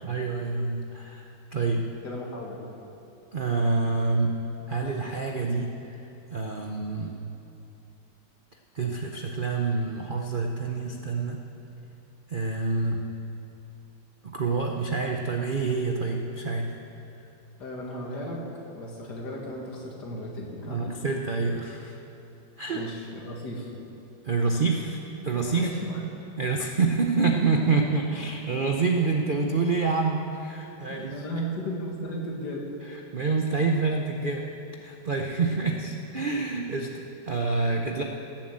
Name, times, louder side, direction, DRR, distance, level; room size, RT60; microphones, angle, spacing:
voice 1, 0.0-1.9 3.3-4.4 4.7-6.0 6.3-7.1 8.7-11.4 12.3-13.0 14.2-16.7 20.7-22.0 22.6-22.8 24.2-25.7 26.4-31.2 33.1-34.5 34.8-38.0, right 4 dB, 70° right, 2 dB, 0.4 m, -27 dB
voice 2, 2.0-2.6 17.6-18.4 18.7-20.8 22.7-23.7 25.5-26.0 30.9-32.7, equal, 55° left, -1 dB, 2.4 m, -35 dB
16.0 x 7.5 x 7.5 m, 2.8 s
omnidirectional pair, 2.1 m